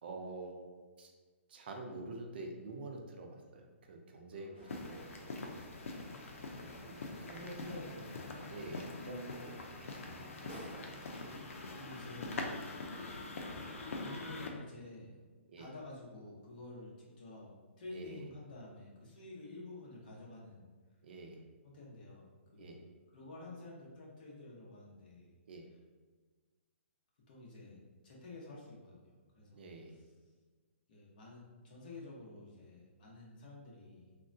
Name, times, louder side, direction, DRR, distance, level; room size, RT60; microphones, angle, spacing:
voice 1, 0.0-0.7 1.0-1.1 1.5-5.8 6.8-7.8 8.5-9.9 15.5-15.7 17.9-18.3 21.0-21.5 22.6-22.8 25.5-25.7 29.5-30.0, right 2 dB, 50° right, 2 dB, 0.4 m, -47 dB
sound 1, 4.5-11.4, right 1 dB, 15° left, 0.9 m, -54 dB
sound 2, 4.7-14.5, left 2 dB, 90° left, 0.5 m, -44 dB
voice 2, 6.6-7.0 7.3-8.2 8.5-8.8 11.2-11.4 11.7-13.3 14.0-15.2 15.6-17.5 17.8-20.7 21.6-22.3 22.5-25.3 27.3-29.7 30.9-34.1, left 2 dB, 40° left, -3 dB, 0.8 m, -50 dB
3.5 x 2.2 x 2.5 m, 1.4 s
hypercardioid pair, 165°, 7 cm